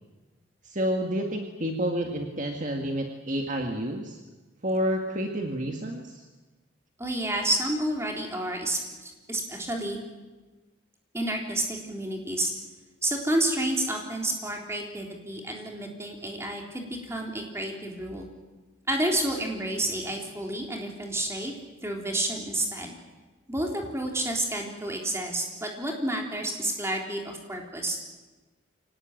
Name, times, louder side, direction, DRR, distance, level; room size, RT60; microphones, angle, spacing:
voice 1, 0.6-4.2 4.6-6.2, equal, 40° right, 3 dB, 1.9 m, -29 dB
voice 2, 7.0-10.0 11.1-12.5 13.0-18.3 18.9-21.5 21.8-22.9 23.5-28.0, right 1 dB, 15° right, 1 dB, 3.7 m, -30 dB
25.0 x 18.0 x 9.2 m, 1.2 s
head